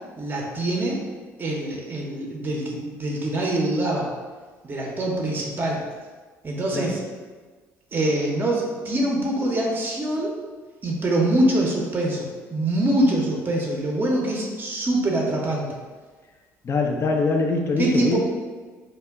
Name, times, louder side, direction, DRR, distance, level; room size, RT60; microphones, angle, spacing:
voice 1, 0.2-1.0 1.4-4.1 4.6-5.8 6.4-7.0 7.9-10.4 10.8-15.8 17.8-18.2, right 1 dB, 30° right, -1 dB, 0.6 m, -24 dB
voice 2, 16.6-18.2, left 3 dB, 40° left, 2 dB, 0.4 m, -23 dB
2.1 x 2.0 x 3.4 m, 1.4 s
hypercardioid pair, 60°, 7 cm